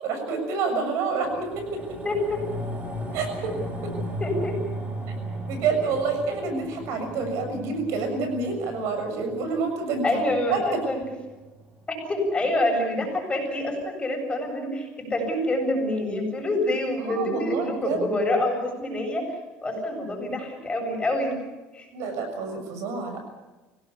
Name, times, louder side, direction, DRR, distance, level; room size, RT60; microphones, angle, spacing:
voice 1, 0.0-2.0 3.1-3.5 3.8-3.9 5.5-10.0 10.5-10.6 17.0-18.0 21.9-23.2, right 4 dB, 70° right, 6 dB, 6.7 m, -28 dB
sound 1, 1.2-11.8 12.2-12.3, right 1 dB, 25° right, 4.2 m, -36 dB
voice 2, 2.0-2.4 4.2-4.6 10.0-11.0 12.1-19.3 19.6-21.4 21.7-21.9, left 1 dB, 20° left, 2 dB, 7.9 m, -26 dB
25.5 x 17.5 x 8.5 m, 1.2 s
cardioid pair, 115°, 5 cm